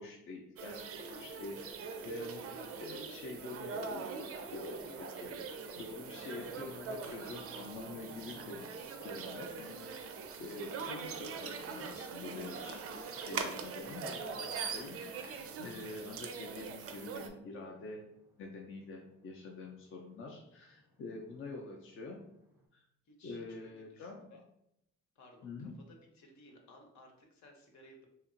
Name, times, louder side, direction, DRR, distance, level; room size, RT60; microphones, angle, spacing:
voice 1, 0.0-1.6 2.0-2.4 2.8-4.1 4.5-8.7 9.0-12.8 13.2-18.0 18.4-22.2 22.7-22.8 23.2-24.4 25.4-25.7, left 3 dB, 45° left, 1 dB, 0.5 m, -46 dB
sound 1, 0.6-17.3, right 5 dB, 50° right, 0.4 m, -42 dB
sound 2, 3.9-22.7, right 1 dB, 5° right, 0.6 m, -61 dB
voice 2, 23.0-24.4 25.1-25.7 26.1-28.1, left 1 dB, 65° left, 1 dB, 0.8 m, -59 dB
2.8 x 2.5 x 2.5 m, 0.78 s
cardioid pair, 90°, 30 cm